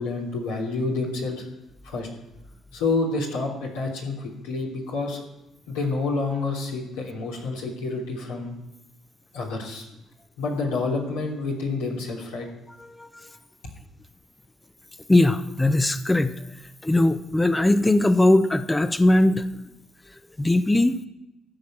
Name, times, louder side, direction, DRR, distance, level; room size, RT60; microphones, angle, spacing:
voice 1, 0.0-1.4 1.8-2.1 2.7-5.2 5.7-8.6 9.3-9.8 10.4-12.5, left 3 dB, 85° left, -4 dB, 3.3 m, -28 dB
voice 2, 15.1-16.3 16.8-19.4 20.4-21.0, left 1 dB, 15° left, 10 dB, 0.8 m, -19 dB
14.0 x 5.8 x 8.8 m, 0.90 s
hypercardioid pair, 50°, 0 cm